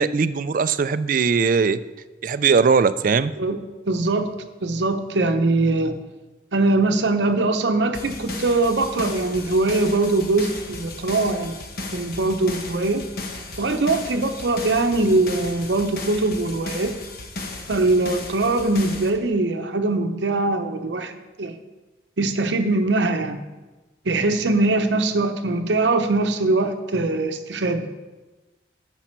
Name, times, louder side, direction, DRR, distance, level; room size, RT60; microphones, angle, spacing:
voice 1, 0.0-1.8 2.2-3.3, right 5 dB, 45° right, 14 dB, 0.3 m, -19 dB
voice 2, 3.9-4.3 4.6-6.0 6.5-11.6 11.9-13.0 13.6-16.9 17.7-21.6 22.2-23.4 24.1-27.9, right 2 dB, 75° right, 7 dB, 0.8 m, -22 dB
sound 1, 7.9-19.1, left 2 dB, 55° left, 1.1 m, -35 dB
10.0 x 6.9 x 4.5 m, 1.2 s
head